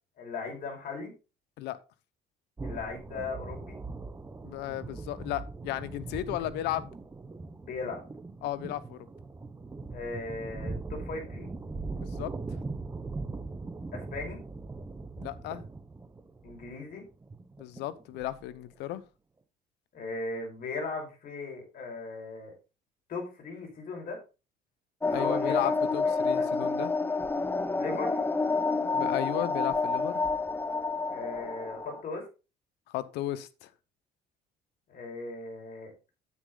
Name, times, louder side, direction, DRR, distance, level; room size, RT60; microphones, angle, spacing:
voice 1, 0.2-1.1 2.6-3.8 7.6-8.0 9.9-11.5 13.9-14.4 16.4-17.0 19.9-22.5 23.1-24.2 25.0-26.5 27.8-28.2 31.1-32.3 34.9-35.9, left 3 dB, 55° left, 5.1 m, -38 dB
sound 1, 2.6-18.7, right 3 dB, 15° right, 0.9 m, -40 dB
voice 2, 4.4-6.9 8.4-9.1 11.9-12.3 15.2-15.6 17.6-19.0 25.1-26.9 28.9-30.2 32.9-33.7, left 14 dB, 90° left, 0.9 m, -34 dB
sound 2, 25.0-32.0, left 3 dB, 15° left, 0.8 m, -29 dB
9.8 x 8.4 x 3.9 m
cardioid pair, 110°, 17 cm